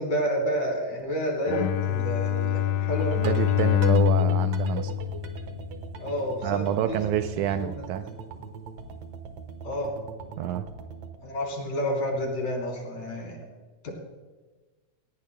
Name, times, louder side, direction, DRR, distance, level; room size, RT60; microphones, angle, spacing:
voice 1, 0.0-3.2 4.2-4.3 6.0-8.1 9.6-9.9 11.2-13.4 13.8-13.9, equal, 55° left, 0 dB, 4.8 m, -30 dB
Bowed string instrument, 1.5-5.9, left 10 dB, 75° left, 1.5 m, -25 dB
sound 1, 2.9-11.2, right 6 dB, 60° right, 2.1 m, -39 dB
voice 2, 3.2-4.9 6.4-8.0 10.4-10.6, right 10 dB, 80° right, 9 dB, 1.9 m, -28 dB
19.0 x 17.5 x 2.2 m, 1.3 s
omnidirectional pair, 3.8 m